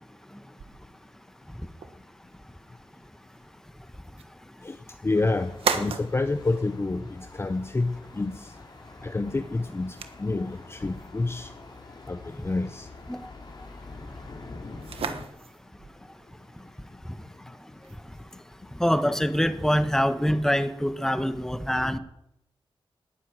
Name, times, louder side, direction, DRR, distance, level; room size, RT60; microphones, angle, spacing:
sound 1, 0.6-19.0, right 6 dB, 90° right, 1.4 m, -40 dB
voice 1, 5.0-8.5 9.0-11.5 12.1-12.9, left 3 dB, 25° left, 10 dB, 0.8 m, -28 dB
Thunder, 5.2-15.3, left 3 dB, 50° left, 2.8 m, -46 dB
voice 2, 18.8-22.0, equal, 5° left, 11 dB, 1.3 m, -24 dB
19.0 x 9.6 x 7.6 m, 0.82 s
wide cardioid pair, 85°, 9 cm